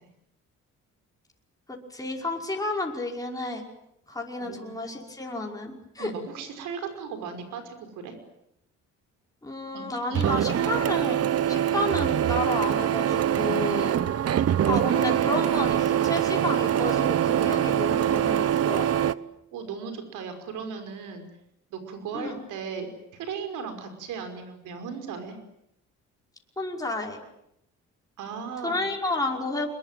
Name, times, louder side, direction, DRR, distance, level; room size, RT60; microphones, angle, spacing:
voice 1, 1.7-3.6 4.1-6.1 9.4-14.0 14.7-18.9 22.1-22.4 26.6-27.2 28.6-29.7, left 2 dB, 10° left, 0 dB, 5.5 m, -31 dB
voice 2, 4.4-4.7 6.0-8.2 9.7-10.7 19.5-21.2 21.7-25.4 28.2-28.8, right 6 dB, 90° right, 8 dB, 5.6 m, -37 dB
Printer, 10.1-19.1, right 10 dB, 55° right, 1.1 m, -24 dB
26.0 x 22.0 x 9.3 m, 0.80 s
cardioid pair, 90°, 30 cm